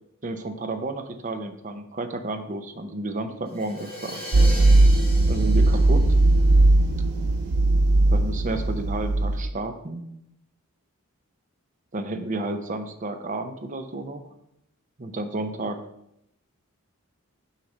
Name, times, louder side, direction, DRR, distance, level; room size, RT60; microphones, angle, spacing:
voice 1, 0.2-4.2 5.3-6.0 8.1-10.0 11.9-14.2 15.0-15.8, right 2 dB, 35° right, 7 dB, 0.7 m, -31 dB
Crash cymbal, 3.4-7.2, left 1 dB, 5° left, 2.9 m, -39 dB
sound 1, 4.3-9.5, right 2 dB, 90° right, 0.5 m, -18 dB
6.5 x 4.7 x 5.2 m, 0.78 s
head